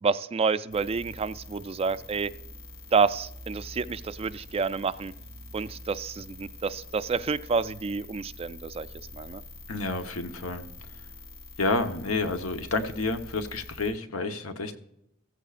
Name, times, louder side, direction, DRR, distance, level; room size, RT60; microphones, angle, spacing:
voice 1, 0.0-2.3 2.9-5.1 5.5-8.9 9.1-9.4, right 5 dB, 30° right, 14 dB, 0.3 m, -28 dB
sound 1, 0.7-13.9, left 2 dB, 50° left, 3.0 m, -45 dB
voice 2, 9.7-10.6 11.6-14.8, left 3 dB, 85° left, 7 dB, 1.1 m, -29 dB
15.0 x 14.5 x 2.5 m, 0.82 s
head